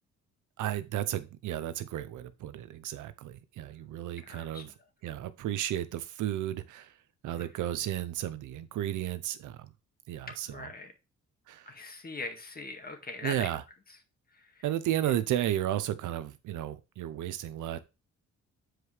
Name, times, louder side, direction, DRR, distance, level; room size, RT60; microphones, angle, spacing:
voice 1, 0.6-4.7 5.0-6.9 7.2-9.7 10.1-10.7 11.5-11.7 13.2-13.6 14.6-17.8, right 12 dB, 80° right, 13 dB, 0.8 m, -33 dB
voice 2, 4.2-4.6 7.4-7.5 10.5-10.9 11.7-13.5 14.3-14.6 15.0-15.1, left 3 dB, 30° left, 5 dB, 1.8 m, -41 dB
7.7 x 4.8 x 3.3 m, 0.28 s
cardioid pair, 90°, 30 cm